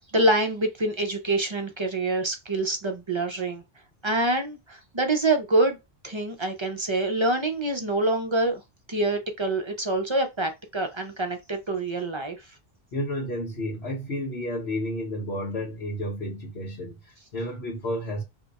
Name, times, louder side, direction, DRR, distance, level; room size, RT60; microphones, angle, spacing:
voice 1, 0.1-3.6 4.0-5.8 6.0-8.6 8.9-12.4, right 2 dB, 40° right, 0.5 m, -26 dB
voice 2, 12.9-18.2, left 1 dB, 80° left, 1.3 m, -31 dB
2.8 x 2.3 x 4.0 m
omnidirectional pair, 1.1 m